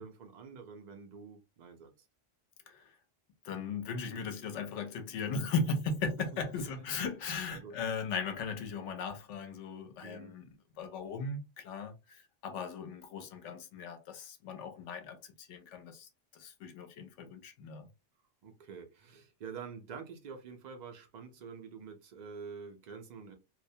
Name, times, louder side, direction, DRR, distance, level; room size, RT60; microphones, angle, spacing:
voice 1, 0.0-1.9 6.7-7.1 7.5-7.8 10.0-10.4 18.4-23.3, right 6 dB, 80° right, 0.4 m, -47 dB
voice 2, 2.7-3.0 3.4-17.9, left 4 dB, 75° left, 0.9 m, -38 dB
2.3 x 2.0 x 2.6 m
omnidirectional pair, 1.3 m